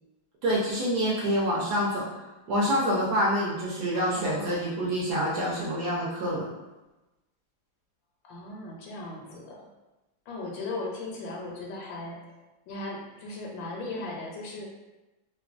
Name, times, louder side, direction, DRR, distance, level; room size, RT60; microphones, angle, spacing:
voice 1, 0.4-2.1 2.5-6.5, equal, 70° right, -5 dB, 1.0 m, -26 dB
voice 2, 3.9-4.7 8.2-9.6 10.3-12.4 12.7-14.7, left 2 dB, 80° left, -2 dB, 1.3 m, -37 dB
3.2 x 2.2 x 2.4 m, 1.1 s
omnidirectional pair, 2.1 m